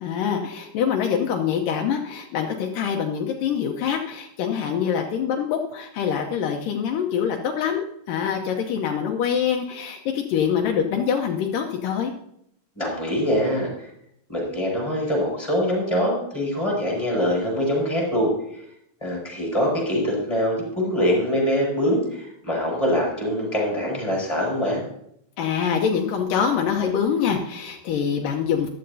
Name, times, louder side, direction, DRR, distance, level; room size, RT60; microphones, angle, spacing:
voice 1, 0.0-12.1 25.4-28.7, left 7 dB, 75° left, 2 dB, 2.5 m, -25 dB
voice 2, 12.7-13.9 14.3-18.3 19.0-24.8, equal, 10° left, -3 dB, 5.0 m, -24 dB
14.5 x 12.5 x 2.7 m, 0.74 s
omnidirectional pair, 4.1 m